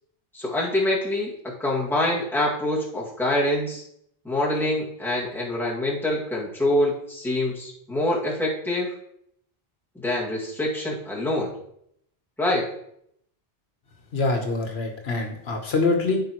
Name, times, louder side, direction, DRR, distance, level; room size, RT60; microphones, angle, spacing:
voice 1, 0.3-3.8 4.2-8.9 10.0-11.5 12.4-12.7, left 1 dB, ahead, -6 dB, 1.9 m, -25 dB
voice 2, 14.1-16.2, left 3 dB, 75° left, 4 dB, 1.3 m, -24 dB
13.0 x 4.9 x 3.0 m, 0.72 s
omnidirectional pair, 1.1 m